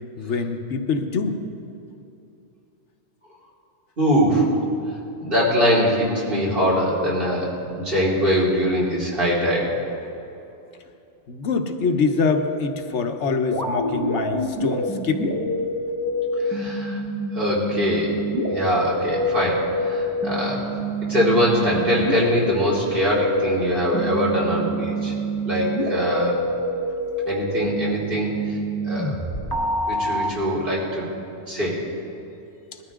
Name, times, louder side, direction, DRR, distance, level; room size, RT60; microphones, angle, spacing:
voice 1, 0.2-1.4 11.3-15.4, left 4 dB, 75° left, 6 dB, 1.3 m, -24 dB
voice 2, 4.0-4.5 5.2-9.8 16.4-17.0 17.3-18.1 18.5-20.7 21.1-25.1 25.4-26.4 27.2-28.6 28.8-29.1 29.9-31.1 31.5-31.8, equal, 45° right, -6 dB, 3.4 m, -22 dB
sound 1, 13.5-30.3, equal, 20° left, 1.1 m, -26 dB
20.5 x 13.0 x 3.7 m, 2.7 s
omnidirectional pair, 1.2 m